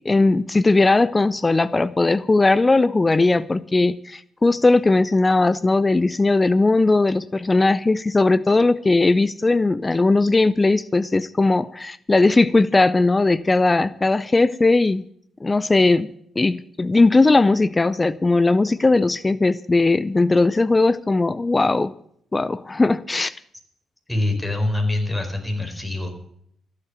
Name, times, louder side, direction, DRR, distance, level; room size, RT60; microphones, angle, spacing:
voice 1, 0.0-15.0 15.4-16.1 16.4-21.9 22.3-23.3, left 3 dB, 25° left, 0.5 m, -18 dB
voice 2, 24.1-26.1, left 2 dB, 10° left, 4.5 m, -24 dB
14.5 x 8.4 x 7.9 m
supercardioid pair, 50°, 0 cm